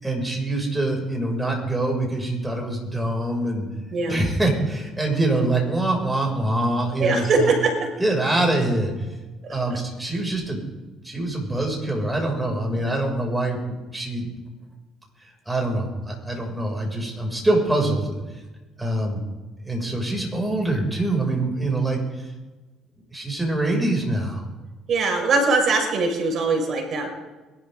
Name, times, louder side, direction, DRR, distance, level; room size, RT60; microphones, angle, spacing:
voice 1, 0.0-3.7 4.1-7.5 8.0-8.9 9.5-10.6 11.0-14.3 15.5-18.1 18.8-19.2 19.6-22.2 23.1-24.4, right 2 dB, 10° right, 0 dB, 6.6 m, -24 dB
voice 2, 7.0-7.7 24.9-27.1, right 3 dB, 55° right, 2 dB, 5.6 m, -21 dB
22.0 x 13.0 x 3.9 m, 1.2 s
supercardioid pair, 70°, 0 cm